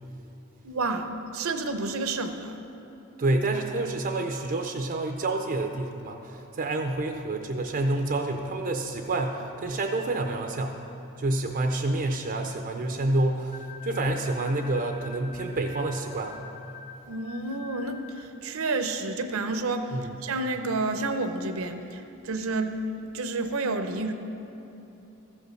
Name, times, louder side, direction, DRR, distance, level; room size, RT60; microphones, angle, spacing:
voice 1, 0.6-2.6 17.1-24.1, right 3 dB, 75° right, 7 dB, 0.7 m, -30 dB
voice 2, 3.2-10.8 11.2-16.4 19.9-20.1, right 2 dB, 40° right, 4 dB, 0.5 m, -28 dB
sound 1, 13.5-18.4, left 5 dB, 30° left, 0.8 m, -46 dB
13.5 x 5.3 x 6.3 m, 2.9 s
head